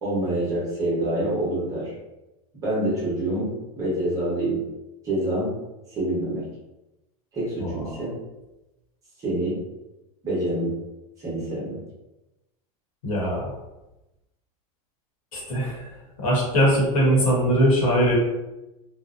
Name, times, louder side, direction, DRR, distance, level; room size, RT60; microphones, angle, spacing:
voice 1, 0.0-1.9 2.6-4.6 5.0-5.6 5.9-6.5 7.3-8.2 9.2-9.6 10.2-10.8 11.2-11.8, right 1 dB, 15° right, -7 dB, 0.8 m, -26 dB
voice 2, 13.0-13.4 15.3-15.9 16.2-18.1, equal, 65° left, -4 dB, 1.0 m, -21 dB
2.6 x 2.1 x 2.4 m, 0.98 s
supercardioid pair, 165°, 19 cm